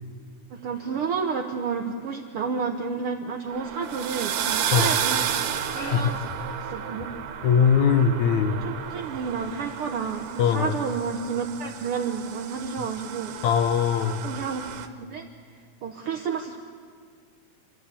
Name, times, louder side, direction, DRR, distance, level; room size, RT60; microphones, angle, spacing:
voice 1, 0.5-5.3 5.7-6.3 6.6-7.1 8.5-13.3 14.2-14.7 15.0-15.3 15.8-16.6, right 5 dB, 70° right, 3 dB, 1.3 m, -30 dB
sound 1, 3.5-14.9, right 9 dB, 90° right, 2.6 m, -32 dB
voice 2, 5.8-6.1 7.4-8.6 10.4-10.7 13.4-14.2, left 7 dB, 70° left, 9 dB, 2.2 m, -21 dB
28.0 x 13.0 x 8.3 m, 2.1 s
omnidirectional pair, 3.5 m